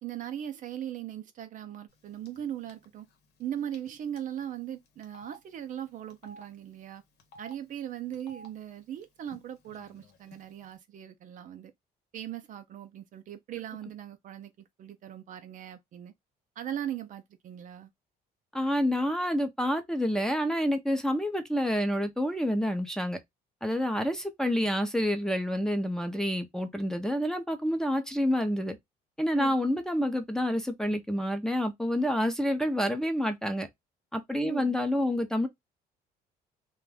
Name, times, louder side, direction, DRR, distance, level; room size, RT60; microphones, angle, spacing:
voice 1, 0.0-3.1 3.4-7.0 7.4-11.7 12.1-16.1 16.6-17.9 29.3-29.6 34.4-34.8, right 10 dB, 50° right, 0.5 m, -39 dB
Telephone, 2.3-2.4 2.7-2.8 3.7-3.9 4.2-4.3 5.0-5.4 6.1-6.4 7.2-7.5 8.1-8.5 9.3-9.4 9.7-10.3, equal, 80° left, 0.9 m, -49 dB
voice 2, 18.5-23.2 23.6-28.8 29.2-33.7 34.1-35.5, equal, 5° left, 0.5 m, -28 dB
2.4 x 2.2 x 3.3 m
cardioid pair, 110°, 17 cm